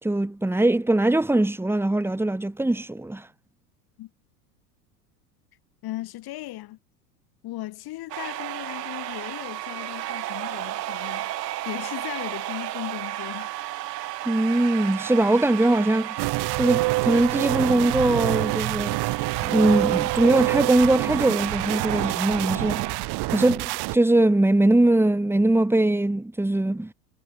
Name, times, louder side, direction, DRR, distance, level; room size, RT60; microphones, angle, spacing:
voice 1, 0.0-3.3 14.2-16.2 16.6-19.0 19.4-22.8 23.3-26.9, right 2 dB, 5° right, 2.7 m, -21 dB
voice 2, 5.8-6.8 7.4-11.3 11.6-13.5, left 16 dB, 45° left, 7.2 m, -37 dB
sound 1, 8.1-23.0, right 15 dB, 75° right, 3.4 m, -33 dB
sound 2, 16.2-24.0, right 23 dB, 50° right, 2.2 m, -27 dB
hypercardioid pair, 90°, 49 cm